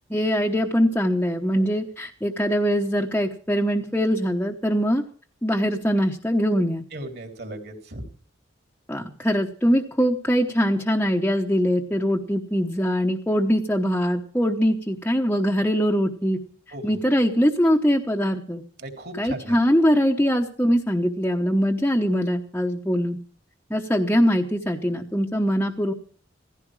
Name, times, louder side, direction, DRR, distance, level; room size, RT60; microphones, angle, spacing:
voice 1, 0.1-5.0 5.4-6.8 8.9-16.4 16.8-18.6 19.1-23.2 23.7-25.9, equal, 10° left, 0 dB, 1.0 m, -22 dB
voice 2, 6.9-8.0 16.7-17.0 18.8-19.8, right 1 dB, 50° right, 4 dB, 3.3 m, -37 dB
17.0 x 15.0 x 4.8 m, 0.43 s
head